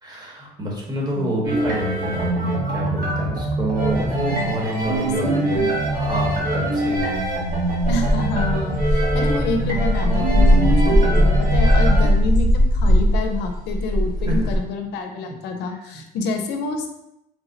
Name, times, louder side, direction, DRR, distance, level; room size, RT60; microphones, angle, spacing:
voice 1, 0.0-7.2 14.2-14.5 15.9-16.0, right 1 dB, 25° right, -3 dB, 1.0 m, -28 dB
voice 2, 1.2-1.5 4.9-5.4 7.9-16.9, left 3 dB, 85° left, 4 dB, 0.5 m, -28 dB
sound 1, 1.4-12.1, right 2 dB, 60° right, 1.1 m, -24 dB
sound 2, 3.9-4.0 4.8-4.9 5.5-5.6 5.9-6.3 6.9-14.6, equal, 85° right, 0.7 m, -19 dB
Wind instrument woodwind instrument, 8.1-12.8, left 5 dB, 25° left, 0.7 m, -40 dB
3.3 x 2.0 x 3.8 m, 0.84 s
cardioid pair, 110°, 17 cm